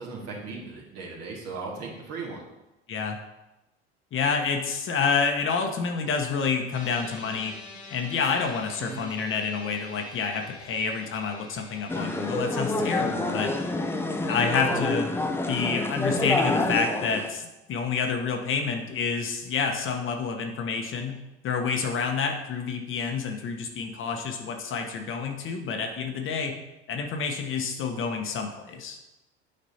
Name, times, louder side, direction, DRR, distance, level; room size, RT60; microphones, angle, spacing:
voice 1, 0.0-2.5 8.8-9.1 14.3-14.9, right 4 dB, 50° right, -2 dB, 2.0 m, -36 dB
voice 2, 4.1-7.5 7.9-13.5 14.3-15.1 15.5-26.6 26.9-29.0, left 5 dB, 40° left, 4 dB, 1.0 m, -28 dB
sound 1, 6.7-19.2, left 3 dB, 75° left, 1.5 m, -50 dB
sound 2, 11.9-17.3, left 2 dB, 5° left, 0.6 m, -28 dB
8.5 x 5.2 x 2.8 m, 0.97 s
hypercardioid pair, 70°, 32 cm